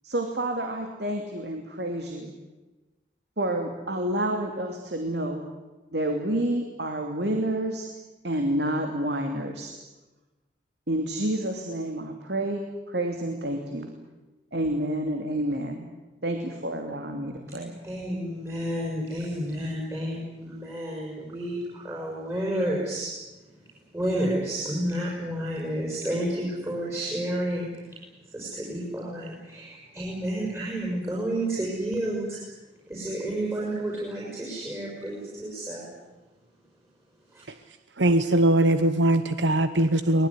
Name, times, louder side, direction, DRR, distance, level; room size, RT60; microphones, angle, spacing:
voice 1, 0.0-2.3 3.4-5.5 5.9-7.9 8.2-9.7 10.9-13.9 14.5-15.9 16.2-17.8, right 1 dB, 70° right, 4 dB, 2.7 m, -29 dB
voice 2, 17.8-23.1 23.9-28.0 28.3-32.4 32.9-35.9 37.3-37.4, right 1 dB, 15° right, -4 dB, 5.9 m, -30 dB
voice 3, 38.0-40.3, right 1 dB, 90° right, 11 dB, 1.1 m, -21 dB
23.5 x 20.5 x 9.8 m, 1.1 s
head